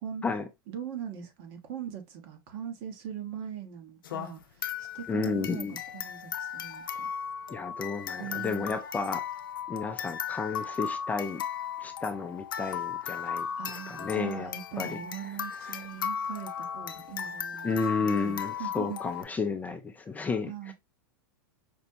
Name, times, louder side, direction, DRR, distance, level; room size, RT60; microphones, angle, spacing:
voice 1, 0.7-7.1 8.2-8.7 13.6-19.0 20.5-20.7, right 9 dB, 50° right, 1.1 m, -41 dB
sound 1, 4.0-19.2, left 8 dB, 85° left, 0.5 m, -36 dB
voice 2, 5.1-5.8 7.5-9.2 9.7-11.4 11.8-14.5 14.8-15.0 15.6-15.8 17.6-20.7, left 4 dB, 15° left, 0.4 m, -32 dB
5.2 x 2.2 x 2.6 m
hypercardioid pair, 115°, 11 cm